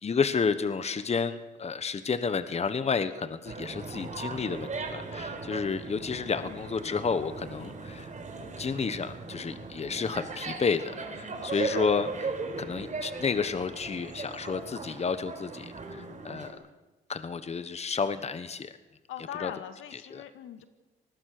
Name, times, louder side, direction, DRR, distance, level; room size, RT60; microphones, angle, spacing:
voice 1, 0.0-8.1 8.6-16.6 17.1-18.7 19.3-19.5 19.9-20.2, left 5 dB, 30° left, 12 dB, 1.2 m, -31 dB
sound 1, 3.4-16.5, right 4 dB, 40° right, 4.9 m, -38 dB
voice 2, 11.5-11.8 19.1-20.6, left 10 dB, 85° left, 8 dB, 2.1 m, -41 dB
25.5 x 20.0 x 6.7 m, 1.1 s
cardioid pair, 90°, 20 cm